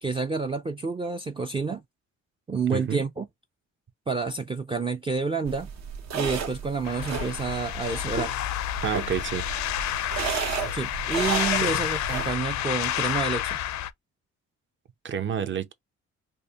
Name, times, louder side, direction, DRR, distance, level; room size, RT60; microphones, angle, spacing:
voice 1, 0.0-1.8 2.5-3.3 4.1-5.7 6.1-8.4 10.7-13.6, right 4 dB, 20° right, 0.4 m, -29 dB
voice 2, 2.7-3.0 8.8-9.5 10.6-10.7 11.6-11.8 15.0-15.7, right 8 dB, 40° right, 0.7 m, -29 dB
sound 1, 5.5-12.4, right 6 dB, 65° right, 0.9 m, -33 dB
sound 2, 6.8-13.9, left 13 dB, 70° left, 0.5 m, -29 dB
5.0 x 2.1 x 2.8 m
cardioid pair, 100°, 29 cm